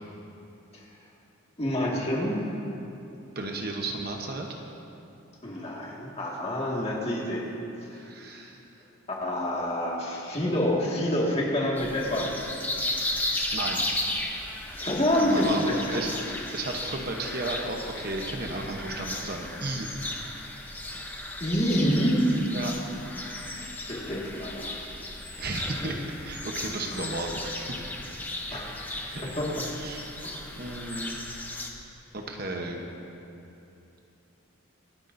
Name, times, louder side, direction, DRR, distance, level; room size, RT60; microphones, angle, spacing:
voice 1, 1.6-2.5 5.4-7.5 7.8-8.1 9.1-12.3 14.7-16.1 21.4-22.3 23.9-24.9 25.6-26.0 26.9-27.0 28.5-29.7 30.2-30.7, left 1 dB, 30° left, -3 dB, 1.9 m, -28 dB
voice 2, 3.3-4.5 7.9-8.6 13.5-13.8 15.2-15.6 15.9-16.1 16.5-19.9 22.5-22.7 25.4-27.8 28.5-28.7 28.9-29.2 29.8-30.0 30.6-31.2 32.1-32.8, right 2 dB, 45° right, 1 dB, 1.0 m, -33 dB
sound 1, 11.8-31.7, left 1 dB, 10° left, 0.8 m, -35 dB
25.0 x 9.9 x 2.7 m, 2.8 s
head